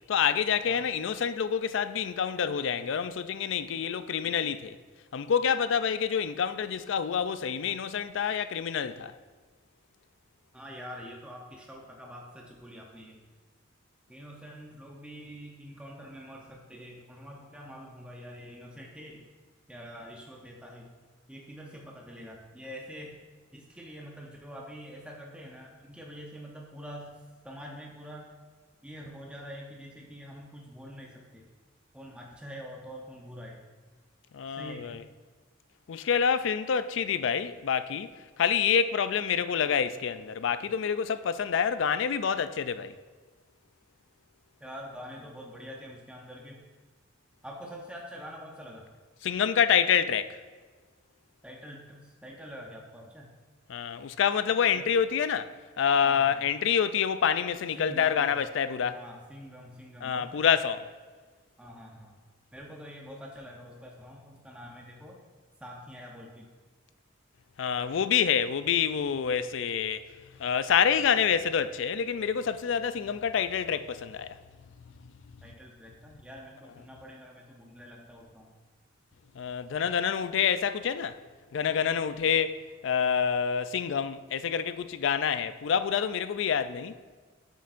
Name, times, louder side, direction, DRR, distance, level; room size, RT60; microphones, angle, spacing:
voice 1, 0.1-4.8 5.1-9.1 34.3-35.0 35.9-38.1 38.4-42.9 49.2-50.4 53.7-59.0 60.0-60.8 67.6-70.0 70.4-74.4 79.4-81.2 81.5-87.0, left 7 dB, 65° left, 0.4 m, -27 dB
voice 2, 10.5-13.2 14.1-19.2 19.7-20.9 21.3-23.2 23.5-28.3 28.8-31.5 31.9-33.6 34.5-35.0 44.6-46.6 47.4-48.9 51.4-53.4 54.7-54.9 56.0-56.4 57.8-58.4 58.9-60.5 61.6-62.2 62.5-65.2 65.6-66.5 75.4-78.5, equal, 5° right, 0.7 m, -45 dB
8.3 x 7.8 x 2.5 m
head